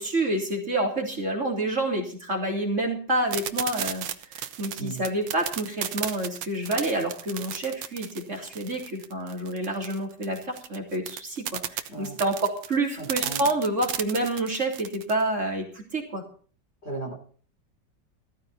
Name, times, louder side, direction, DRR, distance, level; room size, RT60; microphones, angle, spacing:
voice 1, 0.0-4.0 4.3-11.6 12.0-16.2, right 1 dB, 40° right, 0 dB, 3.6 m, -28 dB
sound 1, 3.3-15.2, right 10 dB, 85° right, 1.7 m, -34 dB
voice 2, 13.0-13.5 16.8-17.1, right 3 dB, 35° left, 2 dB, 3.9 m, -35 dB
14.5 x 14.0 x 4.2 m, 0.43 s
omnidirectional pair, 2.0 m